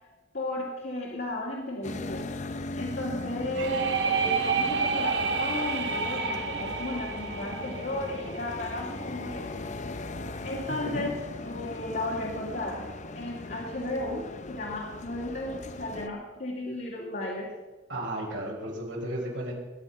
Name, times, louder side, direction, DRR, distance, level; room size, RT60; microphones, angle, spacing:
voice 1, 0.3-2.3 2.8-9.7 10.4-12.9 13.1-17.5, left 1 dB, 55° left, -3 dB, 2.7 m, -34 dB
sound 1, 1.8-16.1, left 2 dB, 40° left, 0.7 m, -39 dB
sound 2, 3.5-9.2, right 5 dB, 65° right, 1.6 m, -30 dB
voice 2, 10.7-11.1 17.9-19.5, right 1 dB, 85° right, -1 dB, 5.0 m, -34 dB
19.5 x 10.0 x 5.6 m, 1.2 s
head